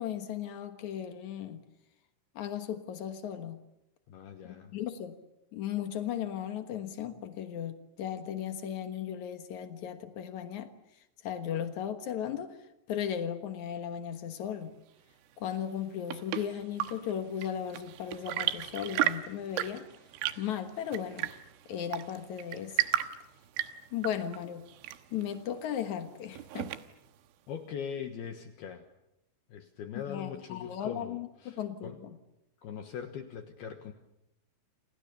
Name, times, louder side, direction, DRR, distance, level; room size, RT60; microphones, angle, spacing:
voice 1, 0.0-1.6 2.3-3.6 4.4-5.2 5.5-10.7 11.2-12.6 12.9-14.7 15.4-19.8 20.4-21.3 21.7-22.8 23.9-24.6 25.1-26.7 29.9-32.2, left 9 dB, 85° left, 8 dB, 1.6 m, -36 dB
voice 2, 4.1-4.7 27.5-28.8 29.5-32.0 32.6-33.9, left 7 dB, 65° left, 7 dB, 2.8 m, -41 dB
Chirp tweet / Engine / Tap, 15.7-27.2, right 14 dB, 80° right, 3.6 m, -36 dB
29.5 x 26.5 x 6.9 m, 0.88 s
omnidirectional pair, 5.7 m